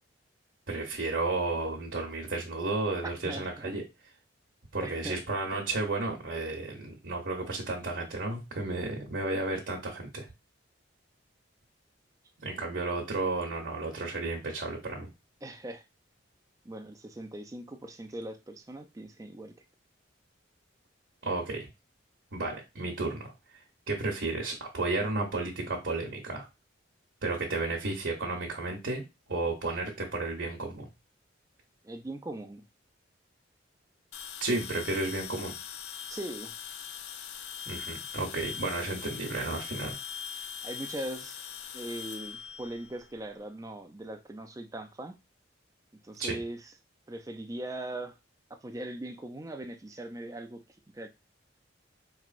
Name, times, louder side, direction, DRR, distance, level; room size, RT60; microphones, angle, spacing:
voice 1, 0.7-3.8 4.7-10.3 12.4-15.1 21.2-21.7 22.3-26.4 27.2-29.0 29.3-30.8 34.4-35.5 37.7-40.0 46.2-46.4, right 2 dB, 60° right, 0.9 m, -33 dB
voice 2, 3.2-3.7 4.8-5.2 15.4-15.8 16.6-19.5 31.8-32.6 36.1-36.5 40.6-41.4 41.7-45.1 46.0-46.7 47.1-48.2 48.5-50.6 50.9-51.1, right 1 dB, 15° right, 0.4 m, -40 dB
sound 1, 34.1-43.4, left 7 dB, 60° left, 0.4 m, -41 dB
4.5 x 3.0 x 2.5 m
head